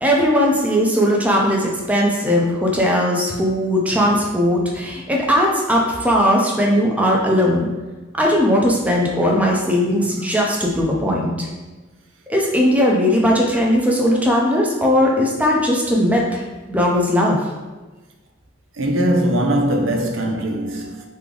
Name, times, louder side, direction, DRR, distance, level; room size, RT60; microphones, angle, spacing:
voice 1, 0.0-7.7 8.2-11.5 12.3-16.4 16.7-17.4, equal, 10° right, 0.6 m, -18 dB
voice 2, 18.8-21.0, right 1 dB, 80° right, 0.6 m, -20 dB
3.5 x 3.3 x 3.8 m
head